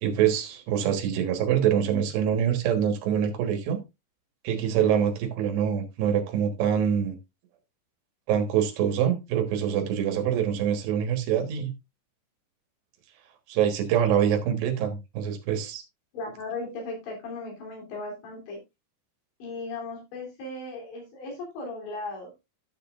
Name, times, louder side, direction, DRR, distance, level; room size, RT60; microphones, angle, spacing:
voice 1, 0.0-3.8 4.5-7.2 8.3-11.7 13.5-15.8, right 9 dB, 75° right, 3.5 m, -25 dB
voice 2, 16.1-18.6 19.4-22.3, left 3 dB, 85° left, 5.4 m, -37 dB
13.5 x 6.8 x 2.4 m
omnidirectional pair, 5.0 m